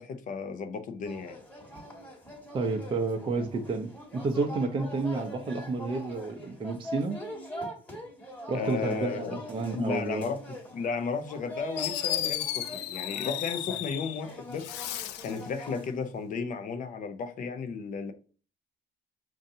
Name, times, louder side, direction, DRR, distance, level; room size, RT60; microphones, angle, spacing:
voice 1, 0.0-1.4 8.5-9.4 9.7-14.7 15.2-18.1, left 5 dB, 50° left, 0.7 m, -34 dB
sound 1, 1.1-15.9, equal, 10° left, 1.4 m, -43 dB
voice 2, 2.5-7.2 8.5-10.3, right 3 dB, 30° right, 0.6 m, -30 dB
Fireworks, 11.4-11.5 11.8-14.2 14.6-15.4, left 12 dB, 85° left, 0.4 m, -33 dB
5.4 x 2.6 x 2.7 m
cardioid pair, 110°, 17 cm